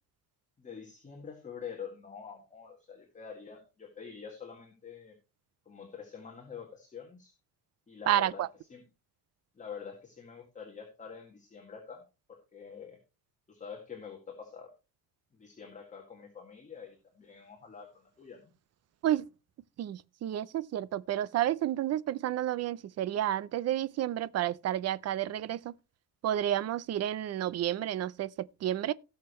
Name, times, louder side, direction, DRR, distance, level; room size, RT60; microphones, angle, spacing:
voice 1, 0.6-5.1 5.7-7.3 7.9-8.8 9.6-12.0 12.3-13.0 13.5-14.7 15.3-18.5, left 6 dB, 20° left, 2.0 m, -46 dB
voice 2, 8.1-8.5 19.0-19.3 19.8-25.7 26.2-28.9, right 12 dB, 40° right, 0.5 m, -31 dB
18.0 x 6.6 x 3.1 m
cardioid pair, 175°, 40 cm